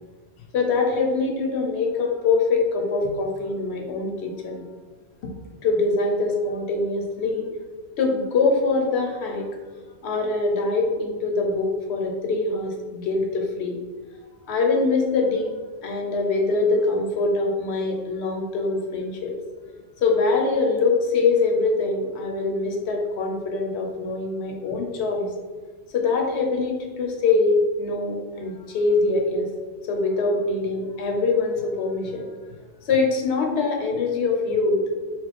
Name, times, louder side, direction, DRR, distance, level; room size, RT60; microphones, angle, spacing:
voice 1, 0.5-4.6 5.6-7.5 8.0-9.5 10.0-13.8 14.5-15.5 15.8-19.3 20.0-25.3 25.9-29.5 29.9-32.3 32.9-34.8, left 3 dB, 65° left, 2 dB, 0.9 m, -23 dB
4.2 x 2.1 x 4.1 m, 1.4 s
omnidirectional pair, 1.2 m